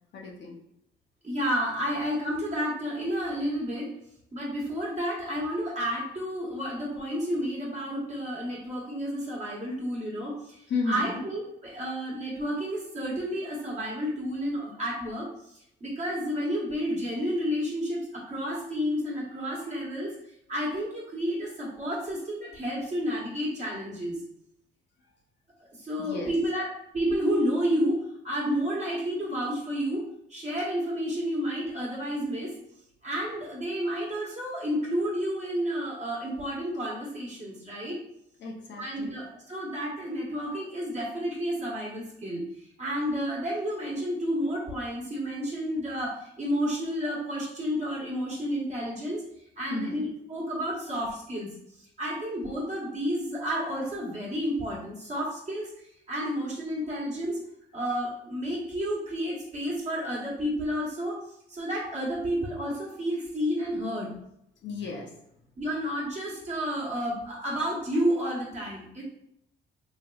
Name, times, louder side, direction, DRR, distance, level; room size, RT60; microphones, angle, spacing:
voice 1, 0.1-0.6 10.7-11.2 26.0-26.3 38.4-39.2 49.7-50.0 64.6-65.1, left 3 dB, 65° left, -1 dB, 0.7 m, -33 dB
voice 2, 1.2-3.9 4.3-24.2 25.8-26.7 26.9-30.0 30.3-32.5 33.0-38.0 38.8-49.2 49.6-51.5 51.8-55.7 56.1-57.4 57.7-61.2 61.5-64.1 65.6-69.0, equal, 35° right, -5 dB, 1.1 m, -31 dB
3.3 x 2.9 x 2.3 m, 0.77 s
cardioid pair, 90°, 20 cm